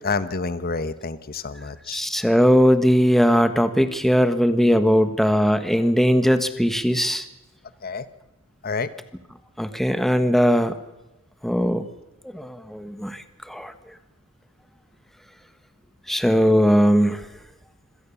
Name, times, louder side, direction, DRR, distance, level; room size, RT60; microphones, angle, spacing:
voice 1, 0.0-2.0 7.8-8.1 8.6-8.9, left 4 dB, 45° left, 13 dB, 1.2 m, -28 dB
voice 2, 1.9-7.2 9.6-10.7 11.4-11.8 12.3-13.7 16.1-17.2, equal, ahead, 10 dB, 1.4 m, -19 dB
25.5 x 17.5 x 7.1 m, 1.0 s
head